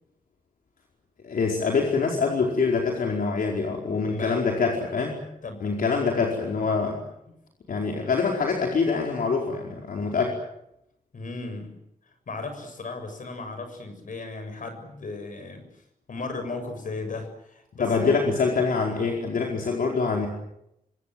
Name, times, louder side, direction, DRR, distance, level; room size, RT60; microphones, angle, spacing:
voice 1, 1.2-5.2 5.6-7.0 7.7-10.3 17.8-20.3, left 4 dB, 80° left, 0 dB, 4.9 m, -25 dB
voice 2, 11.1-11.8 12.3-18.3, left 3 dB, 65° left, 7 dB, 7.5 m, -36 dB
27.5 x 25.5 x 7.8 m, 0.82 s
wide cardioid pair, 130°, 15 cm